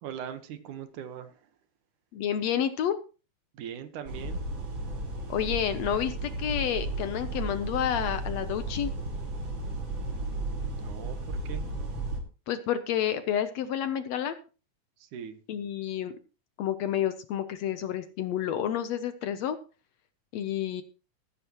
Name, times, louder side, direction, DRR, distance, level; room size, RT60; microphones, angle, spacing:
voice 1, 0.0-1.4 3.5-4.4 10.0-11.6 15.0-15.4, right 8 dB, 75° right, 2.7 m, -41 dB
voice 2, 2.1-3.0 5.3-8.9 12.5-14.4 15.5-16.1 16.6-19.6 20.3-20.8, left 9 dB, 70° left, 1.8 m, -29 dB
sound 1, 4.0-12.2, right 2 dB, 40° right, 3.1 m, -34 dB
14.5 x 13.5 x 3.0 m
omnidirectional pair, 3.6 m